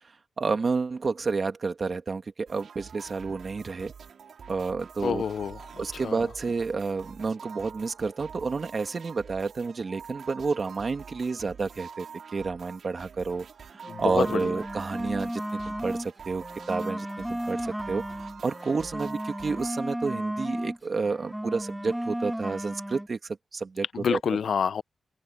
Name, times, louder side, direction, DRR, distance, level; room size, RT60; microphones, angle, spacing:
voice 1, 0.4-3.9 4.5-5.2 5.8-12.1 12.3-18.0 18.4-24.2, right 4 dB, 45° right, 2.1 m, -30 dB
sound 1, 2.5-19.7, right 6 dB, 80° right, 4.3 m, -46 dB
voice 2, 5.0-6.2 13.9-14.5 23.9-24.8, left 7 dB, 75° left, 0.5 m, -28 dB
sound 2, 13.8-16.1 16.4-20.8 21.0-23.1, equal, 5° right, 1.2 m, -34 dB
wide cardioid pair, 105°, 0 cm